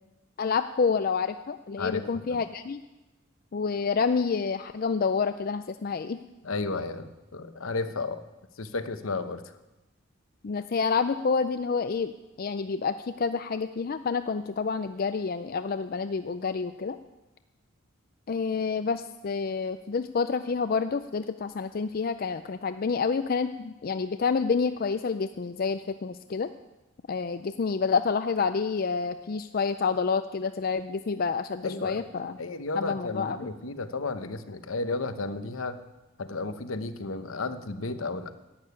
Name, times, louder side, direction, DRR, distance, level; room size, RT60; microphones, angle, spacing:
voice 1, 0.4-2.8 3.5-6.2 10.4-12.1 12.4-17.0 18.3-26.5 27.1-32.3 32.8-33.4, left 5 dB, 45° left, 10 dB, 0.4 m, -28 dB
voice 2, 6.4-8.2 8.6-9.4 31.6-35.8 36.2-38.3, left 3 dB, 75° left, 10 dB, 1.0 m, -33 dB
11.5 x 8.9 x 9.6 m, 1.0 s
head